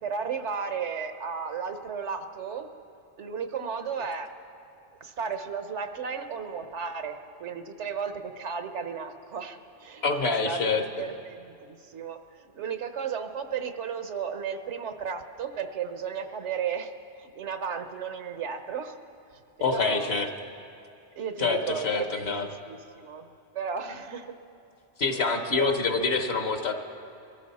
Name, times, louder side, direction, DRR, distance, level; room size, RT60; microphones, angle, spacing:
voice 1, 0.0-2.7 3.2-4.3 5.0-19.0 19.6-20.2 21.2-22.3 22.6-23.3 23.5-24.3 25.1-25.7, right 6 dB, 80° right, 8 dB, 1.2 m, -34 dB
voice 2, 10.0-10.8 19.6-20.3 21.4-22.5 25.0-26.7, left 4 dB, 60° left, 6 dB, 1.3 m, -26 dB
23.0 x 14.0 x 4.2 m, 2.6 s
omnidirectional pair, 1.2 m